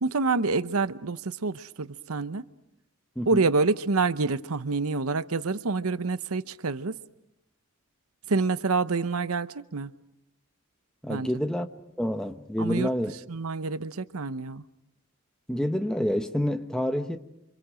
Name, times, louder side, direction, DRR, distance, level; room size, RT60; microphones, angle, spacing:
voice 1, 0.0-2.4 3.3-7.0 8.3-9.9 11.1-11.4 12.6-12.9 13.3-14.6, right 4 dB, 80° right, 0.8 m, -27 dB
voice 2, 11.0-11.7 12.0-13.1 15.5-17.2, equal, 5° left, 1.0 m, -28 dB
29.0 x 26.0 x 6.4 m
head